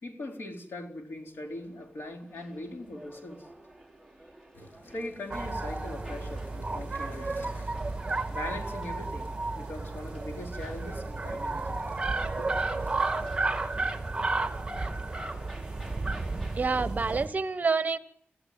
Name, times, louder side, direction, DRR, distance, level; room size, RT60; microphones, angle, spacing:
voice 1, 0.0-3.5 4.8-7.3 8.3-9.3 9.5-12.5, left 1 dB, 75° left, 2 dB, 4.0 m, -41 dB
sound 1, 1.2-16.8, right 1 dB, 15° left, 5.2 m, -52 dB
sound 2, 4.5-13.3, left 1 dB, 55° left, 7.7 m, -53 dB
sound 3, 5.3-17.3, right 3 dB, 20° right, 2.4 m, -32 dB
voice 2, 16.6-18.0, right 4 dB, 45° right, 12 dB, 1.1 m, -27 dB
25.0 x 15.5 x 9.5 m, 0.73 s
wide cardioid pair, 140°, 4 cm